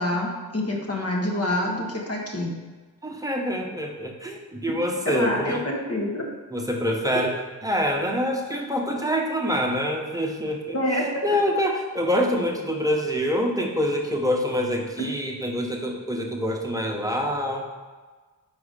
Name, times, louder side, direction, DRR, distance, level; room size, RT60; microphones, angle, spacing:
voice 1, 0.0-2.5 5.1-6.2 10.7-11.1, left 1 dB, 35° left, -1 dB, 1.5 m, -26 dB
voice 2, 3.0-5.6 6.5-7.4 7.6-17.7, equal, 10° right, 1 dB, 1.1 m, -26 dB
4.7 x 4.2 x 5.1 m, 1.3 s
cardioid pair, 50°, 41 cm